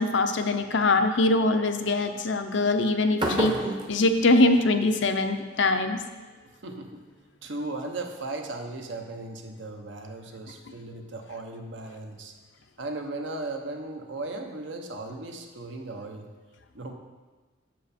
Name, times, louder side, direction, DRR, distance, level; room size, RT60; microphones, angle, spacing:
voice 1, 0.0-3.6 3.9-6.0, left 2 dB, 60° left, 7 dB, 0.6 m, -23 dB
sound 1, 3.2-5.2, right 1 dB, 25° right, 0.8 m, -30 dB
voice 2, 6.6-7.0 7.4-12.3 12.8-16.3 16.7-16.9, right 2 dB, 60° right, 4 dB, 0.8 m, -36 dB
7.5 x 6.7 x 4.3 m, 1.3 s
head